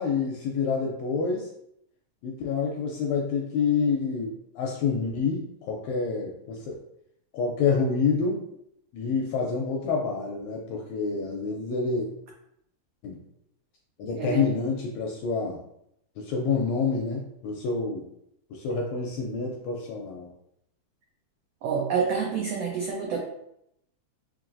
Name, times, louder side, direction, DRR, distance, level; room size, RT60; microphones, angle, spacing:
voice 1, 0.0-1.5 2.2-6.8 7.3-8.4 8.9-12.1 13.0-13.2 14.0-15.6 16.2-18.1 18.5-20.3, left 5 dB, 80° left, -1 dB, 1.6 m, -28 dB
voice 2, 21.6-23.2, right 6 dB, 85° right, -2 dB, 1.4 m, -27 dB
4.5 x 3.1 x 2.5 m, 0.77 s
omnidirectional pair, 3.5 m